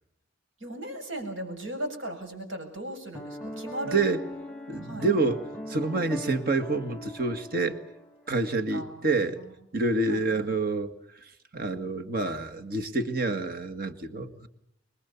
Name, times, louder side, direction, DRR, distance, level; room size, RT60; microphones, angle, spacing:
voice 1, 0.6-4.0 4.8-5.1 8.7-9.1 10.1-10.5, right 1 dB, 70° right, 2 dB, 7.4 m, -37 dB
Piano, 3.1-8.4, left 1 dB, 5° left, 1.6 m, -41 dB
voice 2, 3.8-4.2 4.7-7.8 8.3-9.4 9.7-14.5, right 3 dB, 45° right, 6 dB, 1.9 m, -28 dB
25.5 x 22.0 x 7.0 m, 0.79 s
head